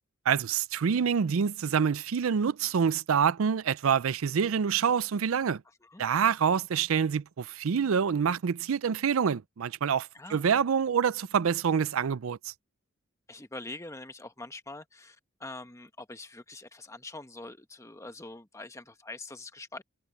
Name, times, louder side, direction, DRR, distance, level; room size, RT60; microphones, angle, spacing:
voice 1, 0.3-5.6 6.0-12.4, right 7 dB, 75° right, 0.4 m, -26 dB
voice 2, 10.1-10.5 13.3-19.8, left 2 dB, 15° left, 1.1 m, -44 dB
head